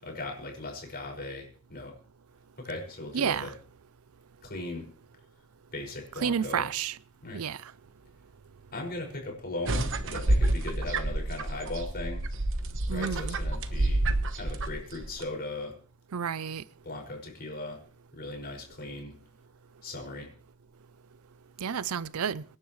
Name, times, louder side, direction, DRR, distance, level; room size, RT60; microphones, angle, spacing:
voice 1, 0.0-1.9 2.6-3.5 4.4-4.9 5.7-6.7 7.2-7.4 8.7-12.2 12.9-14.1 14.3-15.7 16.8-17.8 18.1-19.2 19.8-20.3, left 2 dB, 50° left, 5.6 m, -38 dB
voice 2, 3.1-3.5 6.2-7.0 7.3-7.6 12.9-13.4 16.1-16.6 21.6-22.4, right 7 dB, 85° right, 0.5 m, -30 dB
sound 1, 9.7-15.2, right 2 dB, 65° right, 1.2 m, -28 dB
25.5 x 11.0 x 3.2 m
head